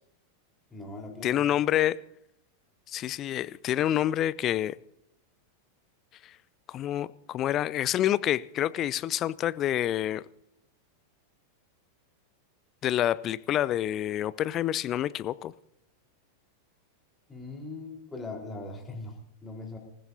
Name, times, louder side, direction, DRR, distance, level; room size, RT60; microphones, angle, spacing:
voice 1, 0.7-1.4 17.3-19.8, left 2 dB, 15° left, 4.1 m, -40 dB
voice 2, 1.2-2.0 2.9-4.8 6.7-10.2 12.8-15.5, left 12 dB, 30° left, 0.4 m, -27 dB
26.5 x 15.0 x 2.7 m
figure-of-eight pair, 90°, 0 cm